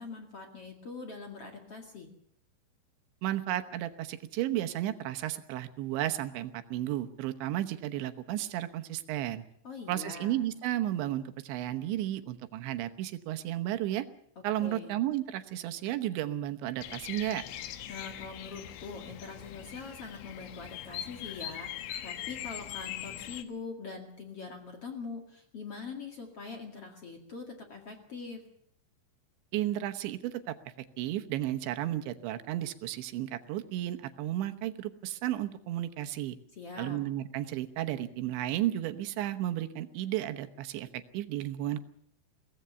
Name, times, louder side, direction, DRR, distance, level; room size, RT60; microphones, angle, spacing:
voice 1, 0.0-2.1 9.6-10.4 14.4-14.9 17.9-28.4 36.5-37.0, left 4 dB, 45° left, 3 dB, 2.3 m, -43 dB
voice 2, 3.2-9.4 9.9-14.1 14.4-17.4 29.5-30.6 31.0-36.4 36.8-41.8, right 13 dB, 80° right, 9 dB, 3.3 m, -33 dB
Bird vocalization bird call bird song, 16.8-23.4, left 11 dB, 85° left, 3.6 m, -41 dB
23.0 x 18.0 x 6.9 m, 0.65 s
omnidirectional pair, 5.2 m